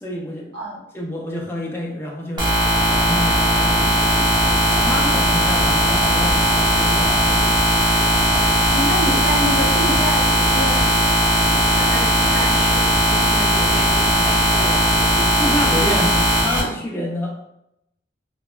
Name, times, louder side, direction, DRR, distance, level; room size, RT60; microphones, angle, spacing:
voice 1, 0.0-0.5 0.9-2.5 3.1-3.9 4.6-7.6 15.1-17.4, left 1 dB, 10° left, -2 dB, 0.4 m, -28 dB
sound 1, 2.4-16.6, equal, 20° right, 0.7 m, -17 dB
voice 2, 8.7-11.2 11.7-15.0, equal, 85° right, -5 dB, 0.8 m, -28 dB
3.1 x 2.2 x 2.2 m, 0.81 s
head